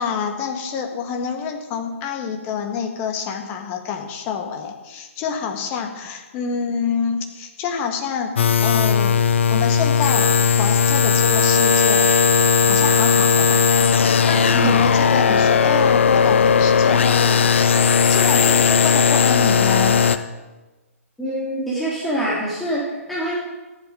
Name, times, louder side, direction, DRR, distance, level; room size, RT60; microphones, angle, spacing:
voice 1, 0.0-8.3 8.6-12.1 12.7-13.7 14.2-17.5 18.0-20.0, left 6 dB, 25° left, 4 dB, 1.7 m, -27 dB
sound 1, 8.4-20.2, left 6 dB, 55° left, 0.8 m, -17 dB
voice 2, 21.2-23.4, right 1 dB, ahead, -7 dB, 2.8 m, -25 dB
14.5 x 10.5 x 5.2 m, 1.2 s
figure-of-eight pair, 125°, 8 cm